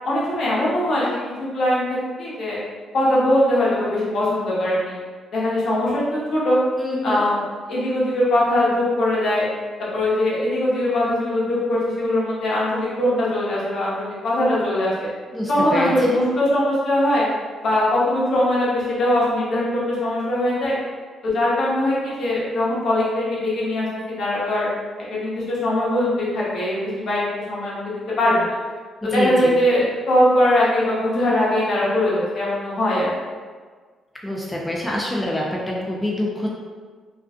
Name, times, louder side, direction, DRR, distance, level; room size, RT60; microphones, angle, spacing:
voice 1, 0.0-1.2 1.5-2.6 2.9-5.0 5.3-6.6 7.0-7.4 7.7-9.5 9.9-15.1 15.5-17.3 17.6-20.8 21.2-24.7 25.1-28.6 29.0-33.1, left 1 dB, 65° left, -7 dB, 0.8 m, -21 dB
voice 2, 6.8-7.2 15.3-16.2 29.1-29.5 34.2-36.5, left 1 dB, 10° left, -3 dB, 0.4 m, -25 dB
2.5 x 2.3 x 2.3 m, 1.5 s
cardioid pair, 90°, 0 cm